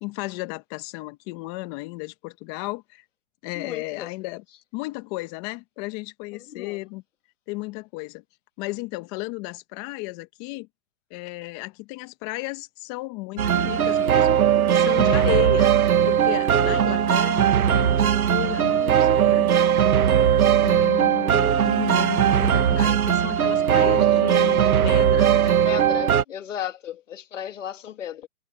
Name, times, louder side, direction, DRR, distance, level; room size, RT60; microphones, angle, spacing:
voice 1, 0.0-3.0 3.4-4.4 4.7-7.0 7.5-8.2 8.6-10.7 11.1-14.4 14.7-15.7 16.0-19.8 20.6-25.6, left 23 dB, 20° left, 1.4 m, -34 dB
voice 2, 3.5-4.1 6.3-6.8 25.6-28.3, left 9 dB, 55° left, 2.3 m, -34 dB
sound 1, 13.4-26.2, right 9 dB, 65° right, 1.7 m, -19 dB
hypercardioid pair, 155°, 46 cm